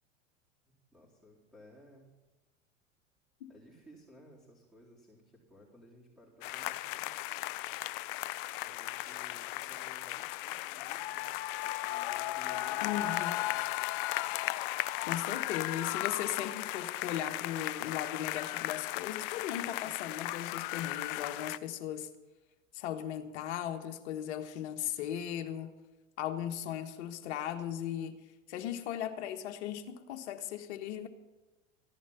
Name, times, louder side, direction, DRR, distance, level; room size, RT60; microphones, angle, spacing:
voice 1, 0.7-2.1 3.5-7.1 8.6-11.4 11.9-13.7, equal, 5° right, -7 dB, 4.0 m, -57 dB
sound 1, 6.4-21.6, left 17 dB, 45° left, 0.5 m, -36 dB
voice 2, 12.8-13.3 15.1-22.1 22.7-25.7 26.2-28.2 28.5-31.1, left 10 dB, 60° left, 6 dB, 1.5 m, -37 dB
15.0 x 11.0 x 5.7 m, 1.1 s
figure-of-eight pair, 90°, 39 cm